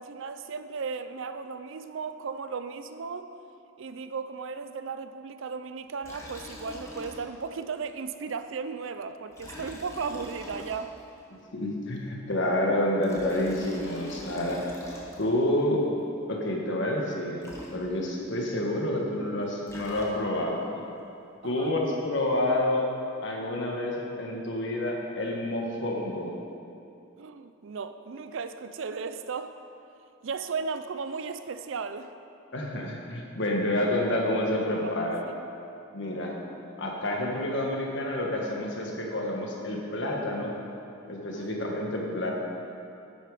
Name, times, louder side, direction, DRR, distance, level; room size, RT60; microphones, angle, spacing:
voice 1, 0.0-3.3 3.8-10.9 21.4-21.8 27.2-29.6 30.2-32.1 34.8-35.4 41.3-41.7, right 5 dB, 60° right, 10 dB, 0.4 m, -36 dB
Liquid, 6.0-7.5 7.8-7.9 9.3-11.2 12.8-15.5 17.1-17.2 17.4-18.2 19.4-20.5, equal, 15° left, 1.2 m, -44 dB
voice 2, 11.3-14.6 15.2-15.8 16.3-17.4 17.7-20.7 21.4-22.8 23.2-26.3 32.5-35.2 35.9-36.3 36.8-40.5 41.1-42.3, left 1 dB, 55° left, -1 dB, 1.5 m, -28 dB
10.5 x 8.8 x 4.9 m, 2.8 s
head